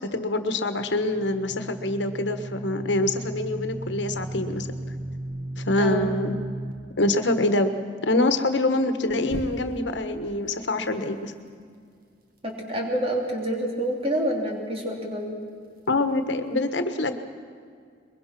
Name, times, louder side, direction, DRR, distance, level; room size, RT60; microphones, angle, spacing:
voice 1, 0.0-4.7 5.6-6.4 7.0-7.7 8.0-11.3 15.9-17.2, left 2 dB, 75° left, 8 dB, 1.3 m, -25 dB
sound 1, 0.9-6.7 9.2-10.0, right 1 dB, 50° right, 1.9 m, -35 dB
voice 2, 5.8-6.3 12.4-15.4, right 1 dB, 30° right, 0 dB, 3.4 m, -28 dB
22.0 x 22.0 x 6.0 m, 2.1 s
head